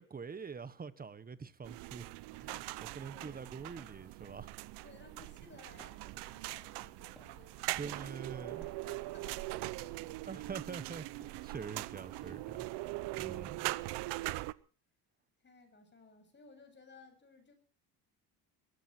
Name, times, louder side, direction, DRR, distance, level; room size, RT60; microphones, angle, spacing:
voice 1, 0.0-2.1 2.4-4.5 7.8-8.7 10.2-12.6 13.2-13.7, right 5 dB, 20° right, 1.3 m, -45 dB
sound 1, 1.6-14.5, right 19 dB, 85° right, 0.8 m, -41 dB
voice 2, 2.7-3.5 4.8-10.2 13.9-14.4 15.4-17.5, left 3 dB, 25° left, 7.8 m, -59 dB
sound 2, 3.6-13.5, equal, ahead, 6.0 m, -66 dB
22.0 x 14.5 x 4.5 m
cardioid pair, 115°, 40 cm